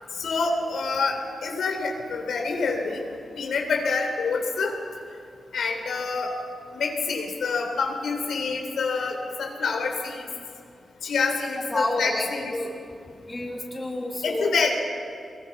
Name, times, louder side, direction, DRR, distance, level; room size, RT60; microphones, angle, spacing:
voice 1, 0.2-3.0 3.4-4.7 5.5-6.3 6.7-10.3 11.0-12.5 14.2-14.7, left 4 dB, 85° left, 2 dB, 3.5 m, -27 dB
voice 2, 11.7-12.7 13.0-14.7, left 1 dB, 20° left, -1 dB, 2.9 m, -30 dB
25.0 x 21.5 x 6.0 m, 2.4 s
wide cardioid pair, 125°, 0 cm